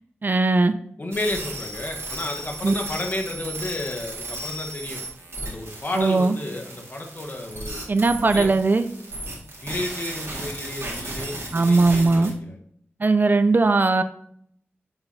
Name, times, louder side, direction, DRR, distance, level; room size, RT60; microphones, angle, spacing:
voice 1, 0.2-0.7 2.6-2.7 6.0-6.4 7.9-8.9 11.5-12.3 13.0-14.0, right 3 dB, 45° right, 10 dB, 0.4 m, -19 dB
voice 2, 1.0-5.0 5.4-7.9 8.3-8.5 9.6-12.6, left 1 dB, 45° left, 2 dB, 1.1 m, -32 dB
sound 1, 1.1-12.3, right 1 dB, 70° right, 1.9 m, -35 dB
7.8 x 5.6 x 2.7 m, 0.68 s
wide cardioid pair, 70°, 5 cm